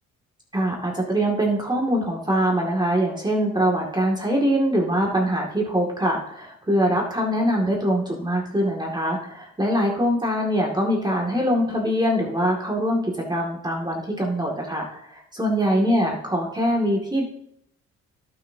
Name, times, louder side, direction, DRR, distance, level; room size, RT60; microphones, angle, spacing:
voice 1, 0.5-17.2, equal, 15° right, -1 dB, 2.3 m, -23 dB
16.5 x 6.3 x 2.8 m, 0.72 s
cardioid pair, 90°, 30 cm